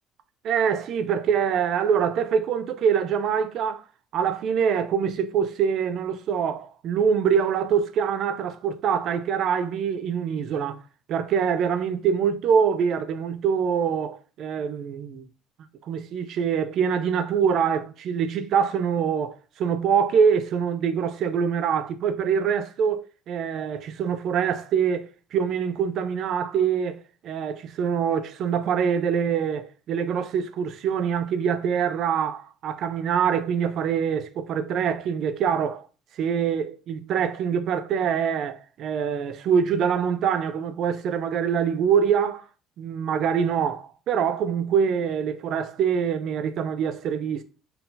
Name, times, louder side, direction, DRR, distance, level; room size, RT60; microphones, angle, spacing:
voice 1, 0.4-3.8 4.1-10.8 11.1-15.3 15.9-35.9 36.2-42.4 42.8-47.4, right 7 dB, 50° right, 0.3 m, -24 dB
4.0 x 2.7 x 3.8 m
cardioid pair, 170°, 0 cm